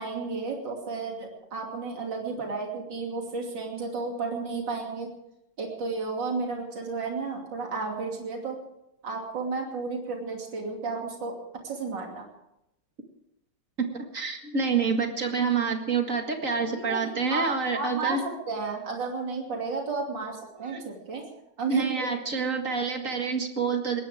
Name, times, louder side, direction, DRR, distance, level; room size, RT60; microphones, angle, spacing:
voice 1, 0.0-5.1 5.6-8.6 9.0-11.4 11.6-12.3 16.6-21.2 21.6-22.1, right 4 dB, 75° right, 0 dB, 3.4 m, -32 dB
voice 2, 14.1-18.2 20.6-20.9 21.7-24.0, right 5 dB, 45° right, 4 dB, 2.2 m, -27 dB
21.0 x 18.5 x 3.6 m, 0.84 s
omnidirectional pair, 2.0 m